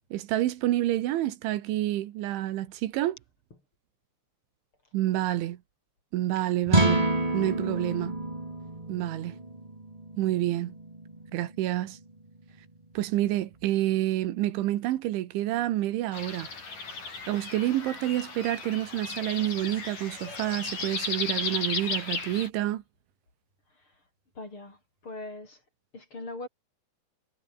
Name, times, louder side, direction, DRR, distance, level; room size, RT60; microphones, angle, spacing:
voice 1, 0.1-3.2 4.9-5.6 6.1-7.1 7.3-8.2 8.9-9.4 10.2-10.8 11.3-12.0 13.0-16.5 17.3-22.8, right 14 dB, 80° right, 3.8 m, -28 dB
sound 1, 6.6-13.0, right 2 dB, 15° right, 1.6 m, -30 dB
sound 2, 16.1-22.5, left 4 dB, 45° left, 8.3 m, -35 dB
voice 2, 24.4-24.8 25.0-25.6 25.9-26.5, left 2 dB, 25° left, 7.0 m, -40 dB
omnidirectional pair, 5.4 m